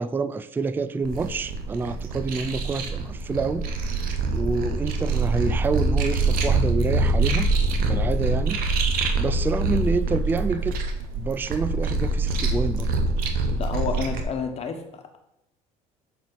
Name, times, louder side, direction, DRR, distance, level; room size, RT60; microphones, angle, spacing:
voice 1, 0.0-4.0 4.3-7.5 7.9-8.7 9.2-10.8 11.1-12.9, right 4 dB, 10° right, 0.3 m, -27 dB
sound 1, 1.0-14.2, right 3 dB, 60° right, 1.0 m, -25 dB
voice 2, 13.6-15.2, left 6 dB, 40° left, 1.2 m, -30 dB
6.8 x 4.2 x 4.0 m
supercardioid pair, 80°, 17 cm